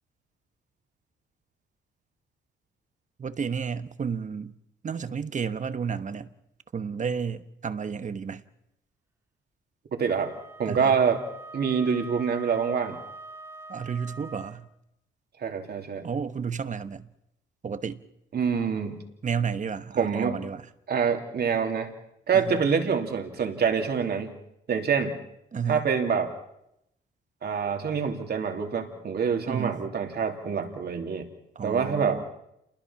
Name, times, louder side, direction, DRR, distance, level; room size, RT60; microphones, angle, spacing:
voice 1, 3.2-4.5 4.8-6.3 6.7-8.4 10.7-11.0 13.7-14.7 16.0-17.1 17.6-18.0 19.2-20.6 22.3-22.6 25.5-25.9 29.5-29.8 31.5-32.2, right 6 dB, 40° right, 1.2 m, -31 dB
voice 2, 9.9-10.3 10.6-11.2 11.5-13.0 15.4-16.0 18.3-19.0 19.9-20.4 20.9-21.9 22.3-24.3 24.7-25.2 25.7-26.3 27.4-31.3 31.6-32.2, right 6 dB, 55° right, 3.1 m, -26 dB
Wind instrument woodwind instrument, 10.1-14.7, right 2 dB, 10° right, 2.2 m, -44 dB
28.0 x 20.5 x 5.9 m
cardioid pair, 90°, 20 cm